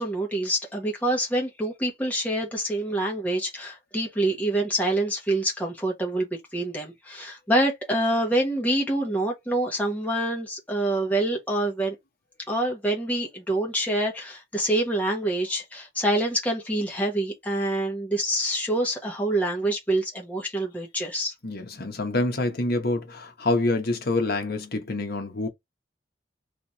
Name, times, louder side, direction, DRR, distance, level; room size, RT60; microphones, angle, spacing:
voice 1, 0.0-11.9 12.5-21.3, right 1 dB, 10° left, 1.2 m, -26 dB
voice 2, 21.4-25.5, left 2 dB, 60° left, 1.2 m, -26 dB
3.4 x 2.9 x 4.1 m
head